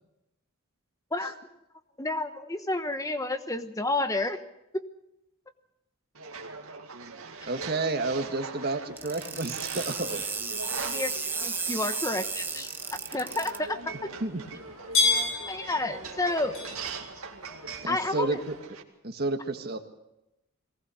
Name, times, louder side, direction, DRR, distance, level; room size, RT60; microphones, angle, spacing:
voice 1, 2.0-4.4 4.7-4.8 10.8-11.1 11.4-12.7 13.1-14.1 15.5-16.5 17.9-18.4, left 2 dB, 15° left, 9 dB, 1.1 m, -30 dB
sound 1, 6.1-18.8, right 5 dB, 85° right, 2.2 m, -42 dB
voice 2, 7.5-10.2 14.2-14.4 17.8-18.5 19.0-19.8, right 2 dB, 45° right, 6 dB, 1.7 m, -30 dB
sound 2, 8.9-18.6, left 3 dB, 75° left, 6.6 m, -35 dB
sound 3, 9.0-13.6, right 4 dB, 10° right, 1.0 m, -33 dB
22.5 x 19.0 x 6.4 m, 0.87 s
head